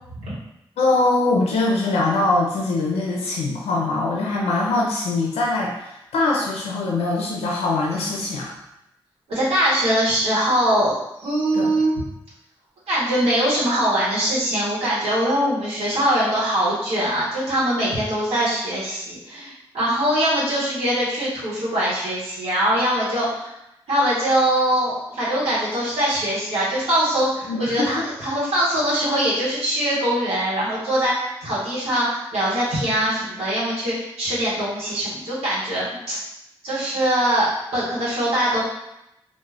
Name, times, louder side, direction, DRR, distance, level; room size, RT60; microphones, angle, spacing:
voice 1, 0.8-8.6 11.5-11.7 27.5-27.9, left 2 dB, 85° left, -2 dB, 0.4 m, -22 dB
voice 2, 9.3-10.9 11.2-12.0 12.9-23.5 23.9-36.2 36.6-38.6, right 1 dB, 90° right, -9 dB, 0.9 m, -22 dB
2.4 x 2.0 x 3.2 m, 0.87 s
supercardioid pair, 40°, 10 cm